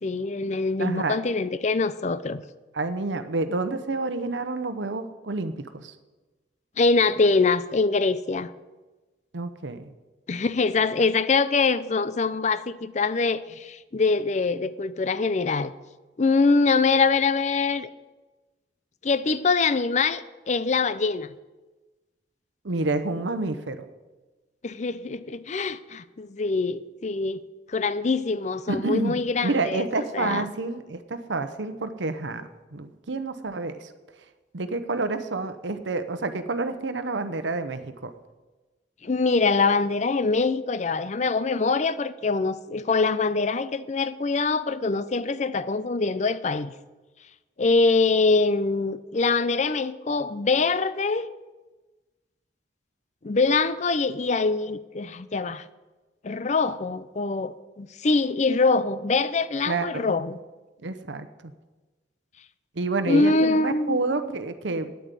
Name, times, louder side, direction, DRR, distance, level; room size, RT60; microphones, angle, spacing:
voice 1, 0.0-2.4 6.8-8.5 10.3-15.7 16.2-17.9 19.0-21.3 24.6-27.4 27.7-29.9 30.1-30.5 39.0-46.7 47.6-51.3 53.2-55.6 56.2-60.4 63.1-64.0, left 4 dB, 40° left, 0.5 m, -24 dB
voice 2, 0.8-1.2 2.7-5.9 9.3-9.9 22.6-23.8 28.7-29.2 29.4-33.9 34.5-38.1 59.7-60.1 60.8-61.3 62.8-64.9, right 3 dB, 90° right, 0.9 m, -29 dB
9.3 x 8.9 x 8.3 m
head